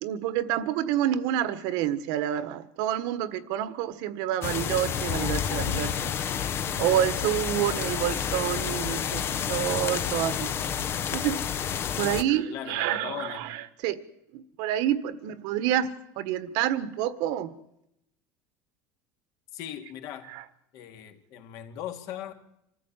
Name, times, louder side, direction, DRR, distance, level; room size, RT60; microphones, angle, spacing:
voice 1, 0.0-6.1 6.8-10.5 11.1-11.4 12.0-14.0 14.3-15.9 16.2-17.5 20.3-20.4, right 11 dB, 65° right, 1.5 m, -28 dB
sound 1, 4.4-12.2, left 8 dB, 35° left, 1.1 m, -29 dB
voice 2, 12.1-13.5 19.5-20.4 20.7-22.3, left 11 dB, 55° left, 2.7 m, -39 dB
26.0 x 14.5 x 9.1 m
cardioid pair, 145°, 7 cm